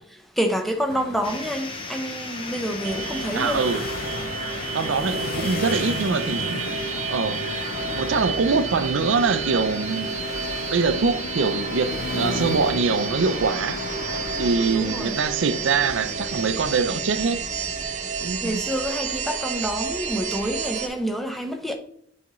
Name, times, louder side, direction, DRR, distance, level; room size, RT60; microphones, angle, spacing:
voice 1, 0.2-3.6 14.7-15.2 18.4-21.8, equal, ahead, 0.7 m, -28 dB
sound 1, 0.9-18.4, left 4 dB, 50° left, 0.5 m, -35 dB
sound 2, 1.2-16.8, left 2 dB, 30° left, 1.2 m, -39 dB
sound 3, 2.8-20.9, right 5 dB, 40° right, 0.7 m, -31 dB
voice 2, 3.3-3.8 4.7-6.6 7.1-7.4 7.9-10.1 10.7-13.8 14.4-17.4 18.2-18.6, right 4 dB, 90° right, 0.5 m, -24 dB
8.3 x 4.9 x 3.1 m
head